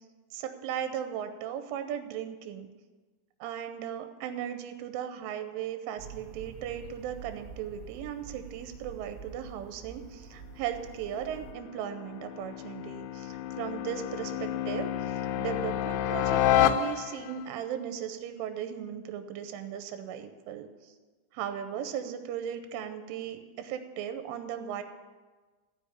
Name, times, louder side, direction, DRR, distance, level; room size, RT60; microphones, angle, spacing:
voice 1, 0.3-2.7 3.4-20.7 21.3-24.8, right 9 dB, 85° right, 8 dB, 3.2 m, -37 dB
sound 1, 6.0-11.5, right 7 dB, 70° right, 3.4 m, -47 dB
sound 2, 11.0-17.4, left 11 dB, 85° left, 3.2 m, -30 dB
14.0 x 5.0 x 8.7 m, 1.3 s
omnidirectional pair, 5.7 m